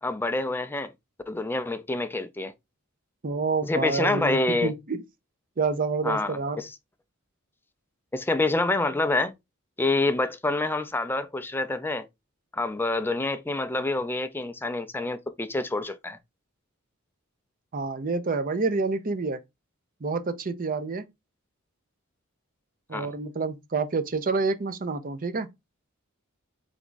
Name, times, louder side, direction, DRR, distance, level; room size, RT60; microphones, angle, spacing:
voice 1, 0.0-0.9 1.3-2.5 3.7-4.7 6.0-6.7 8.1-9.3 9.8-12.1 12.5-16.2 22.9-23.1, left 2 dB, 10° left, 0.4 m, -27 dB
voice 2, 3.2-5.0 5.6-6.6 17.7-19.4 20.0-21.1 22.9-25.5, right 4 dB, 40° right, 0.6 m, -28 dB
3.6 x 3.5 x 3.9 m
head